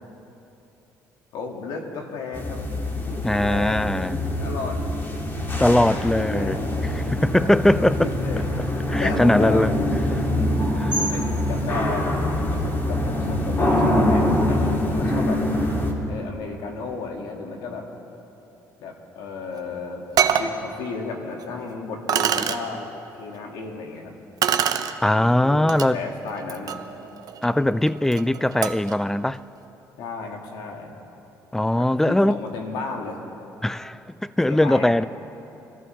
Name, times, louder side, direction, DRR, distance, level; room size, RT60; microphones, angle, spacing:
voice 1, 1.3-2.6 3.1-3.9 4.4-4.8 5.4-6.8 7.3-8.5 9.0-9.7 11.0-12.2 12.5-15.5 16.1-17.9 18.8-22.8 23.2-24.2 25.1-26.8 30.0-31.0 31.8-33.2 34.5-34.9, left 4 dB, 85° left, 2.0 m, -34 dB
sound 1, 2.3-15.9, left 1 dB, 30° left, 2.5 m, -24 dB
voice 2, 3.2-4.2 5.6-6.6 7.0-8.1 8.9-9.7 10.1-10.3 10.8-11.0 25.0-26.0 27.4-29.4 31.5-32.4 33.6-35.1, left 1 dB, 5° left, 0.4 m, -20 dB
sound 2, 19.5-19.6 20.2-20.5 21.4-21.5 22.1-22.6 24.4-24.9 25.7-25.9 26.3-28.9, right 9 dB, 60° right, 0.8 m, -25 dB
24.5 x 14.0 x 3.3 m
supercardioid pair, 80°, 7 cm